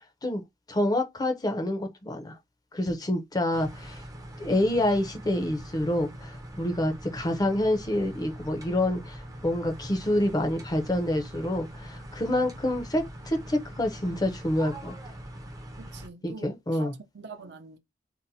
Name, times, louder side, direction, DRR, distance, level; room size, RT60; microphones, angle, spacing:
voice 1, 0.7-2.4 2.7-4.0 4.4-14.9 16.2-16.9, left 1 dB, 20° left, 0.5 m, -27 dB
sound 1, 3.5-16.1, right 1 dB, 20° right, 0.5 m, -43 dB
voice 2, 15.8-17.8, right 3 dB, 65° right, 0.6 m, -45 dB
2.6 x 2.1 x 4.0 m
head